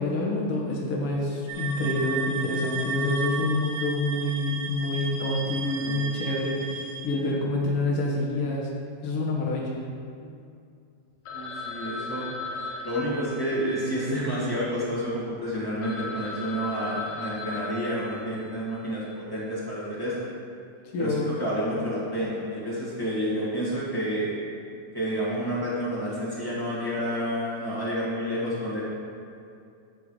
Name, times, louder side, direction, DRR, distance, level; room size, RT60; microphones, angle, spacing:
voice 1, 0.0-8.7 9.0-9.7 20.9-21.3, left 2 dB, 50° left, -3 dB, 1.8 m, -27 dB
sound 1, 1.5-7.0, right 5 dB, 85° right, 2.9 m, -34 dB
voice 2, 5.8-6.1 11.3-12.3 12.8-20.3 21.0-24.3 24.9-28.8, equal, 25° left, -9 dB, 0.4 m, -29 dB
Telephone, 11.3-15.0 15.5-15.6 15.8-18.7, left 3 dB, 80° left, 1.5 m, -37 dB
13.0 x 4.7 x 4.9 m, 2.5 s
omnidirectional pair, 4.2 m